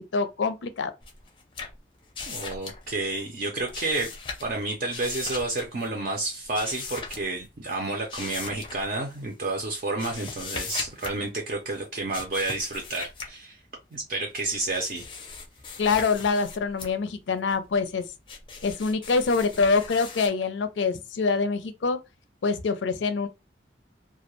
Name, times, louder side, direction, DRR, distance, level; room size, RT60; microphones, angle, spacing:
voice 1, 0.1-0.9 15.8-18.0 18.6-22.0 22.4-23.3, left 4 dB, 90° left, 0.4 m, -25 dB
sound 1, 1.0-2.9 3.4-4.6 4.9-5.9 6.4-7.4 8.1-9.2 9.7-11.2 12.1-13.3 14.3-16.9 17.5-20.3, left 4 dB, 25° left, 0.5 m, -39 dB
voice 2, 2.3-4.1 4.4-13.6 13.9-15.0, right 2 dB, 50° right, 0.5 m, -30 dB
2.3 x 2.1 x 2.9 m
head